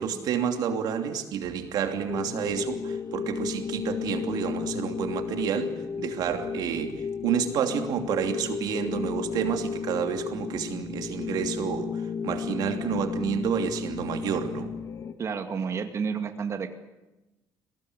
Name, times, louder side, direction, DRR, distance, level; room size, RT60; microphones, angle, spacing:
voice 1, 0.0-14.7, right 8 dB, 70° right, 6 dB, 2.9 m, -29 dB
sound 1, 2.1-15.1, left 6 dB, 50° left, 2.3 m, -34 dB
voice 2, 15.2-16.8, right 6 dB, 45° right, 6 dB, 2.3 m, -30 dB
22.5 x 18.5 x 9.9 m, 1.0 s
cardioid pair, 95°, 7 cm